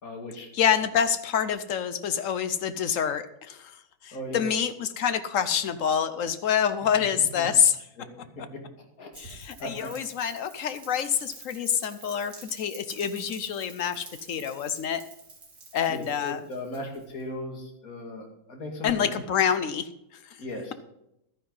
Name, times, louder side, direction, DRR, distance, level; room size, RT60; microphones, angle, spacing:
voice 1, 0.0-0.5 4.1-4.5 7.2-7.5 8.0-9.1 9.6-9.9 15.9-19.2 20.4-20.7, left 1 dB, 45° left, 3 dB, 2.6 m, -38 dB
voice 2, 0.5-3.7 4.0-7.8 9.2-15.0 15.7-16.4 18.8-19.9, left 8 dB, 65° left, 12 dB, 0.8 m, -26 dB
Rain, 9.1-17.2, right 3 dB, 50° right, 3.3 m, -48 dB
12.0 x 10.0 x 5.4 m, 0.84 s
omnidirectional pair, 2.1 m